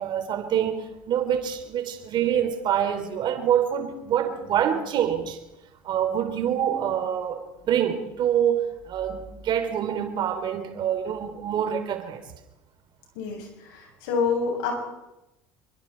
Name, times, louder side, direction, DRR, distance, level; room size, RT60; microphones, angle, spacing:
voice 1, 0.0-5.4 5.8-12.2, right 9 dB, 55° right, 3.3 m, -26 dB
voice 2, 13.1-14.7, left 5 dB, 80° left, 7.9 m, -27 dB
26.0 x 24.0 x 4.5 m
hypercardioid pair, 75°, 9 cm